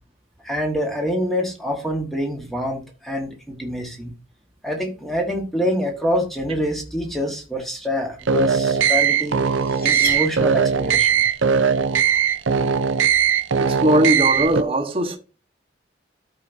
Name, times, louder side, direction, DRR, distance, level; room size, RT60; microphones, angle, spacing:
voice 1, 0.4-4.1 4.6-9.4 9.8-11.2, equal, ahead, 1.7 m, -26 dB
sound 1, 8.2-14.6, right 7 dB, 75° right, 0.6 m, -19 dB
sound 2, 9.3-11.0, left 4 dB, 50° left, 2.1 m, -35 dB
voice 2, 13.6-15.2, right 1 dB, 30° right, 1.3 m, -19 dB
12.5 x 5.0 x 2.7 m
head